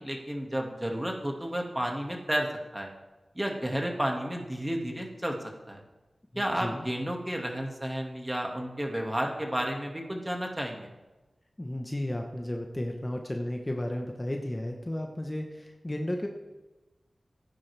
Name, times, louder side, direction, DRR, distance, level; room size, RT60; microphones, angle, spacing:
voice 1, 0.0-2.9 3.4-5.4 5.7-5.8 6.4-10.9, equal, 15° right, 1 dB, 2.1 m, -32 dB
voice 2, 6.3-6.9 11.6-16.3, left 1 dB, 25° left, 2 dB, 1.2 m, -33 dB
15.5 x 9.8 x 3.5 m, 1.1 s
cardioid pair, 45°, 0 cm